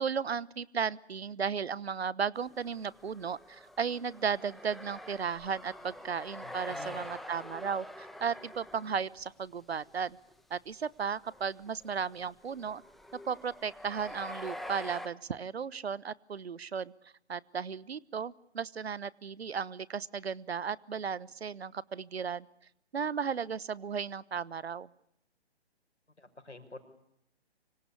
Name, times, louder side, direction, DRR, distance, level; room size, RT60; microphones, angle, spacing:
voice 1, 0.0-10.2 10.5-12.8 13.3-16.9 17.3-22.5 22.9-24.9, right 6 dB, 65° right, 21 dB, 1.1 m, -35 dB
sound 1, 2.5-9.2 9.7-10.0 10.3-10.4 11.0-15.1, left 1 dB, ahead, 1.0 m, -46 dB
voice 2, 6.4-7.1 26.2-26.8, left 2 dB, 90° left, 7 dB, 5.3 m, -49 dB
26.0 x 25.5 x 8.4 m, 0.77 s
figure-of-eight pair, 135°, 33 cm